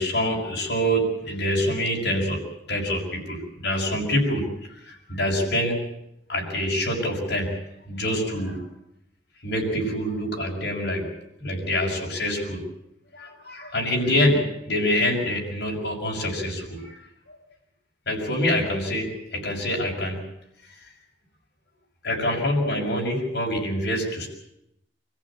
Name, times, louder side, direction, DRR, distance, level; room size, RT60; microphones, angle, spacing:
voice 1, 0.0-4.5 4.8-5.8 6.3-8.6 9.4-11.1 11.4-12.6 13.1-17.0 17.3-17.4 18.1-20.2 22.0-24.3, equal, 75° left, -1 dB, 6.4 m, -26 dB
25.0 x 14.5 x 8.8 m, 0.82 s
head